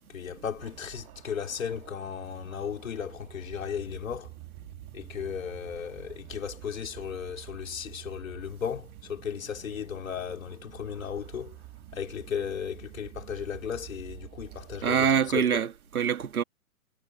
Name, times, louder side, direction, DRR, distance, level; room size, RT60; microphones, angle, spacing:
voice 1, 0.1-4.3 4.9-11.6 11.9-15.1 15.3-15.6, left 7 dB, 60° left, 4.5 m, -35 dB
sound 1, 0.6-15.5, right 18 dB, 15° right, 2.5 m, -49 dB
voice 2, 14.8-16.4, right 8 dB, 70° right, 2.7 m, -25 dB
hypercardioid pair, 180°, 46 cm